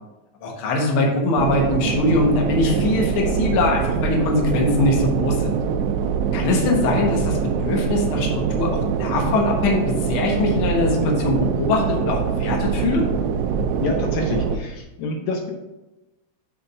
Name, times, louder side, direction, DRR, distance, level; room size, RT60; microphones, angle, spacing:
voice 1, 0.4-5.6 6.3-8.3 8.6-8.7 9.0-13.1, left 2 dB, 55° left, 0 dB, 1.6 m, -21 dB
sound 1, 1.4-14.6, right 6 dB, 85° right, 2.0 m, -24 dB
voice 2, 13.8-15.5, left 3 dB, 75° left, 2 dB, 2.0 m, -27 dB
6.9 x 3.4 x 5.3 m, 1.0 s
omnidirectional pair, 3.3 m